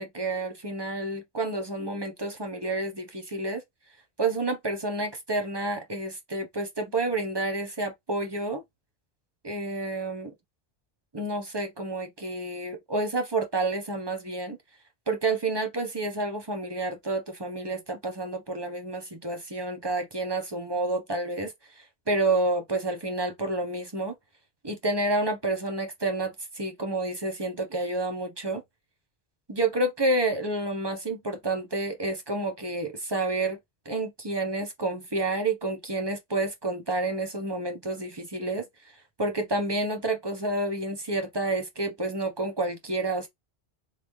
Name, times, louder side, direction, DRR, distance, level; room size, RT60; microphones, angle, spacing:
voice 1, 0.0-3.6 4.2-8.6 9.4-10.3 11.1-14.6 15.1-24.1 24.6-28.6 29.5-33.6 33.8-38.7 39.2-43.3, right 2 dB, 25° right, 1.1 m, -29 dB
3.8 x 3.6 x 3.2 m
omnidirectional pair, 1.1 m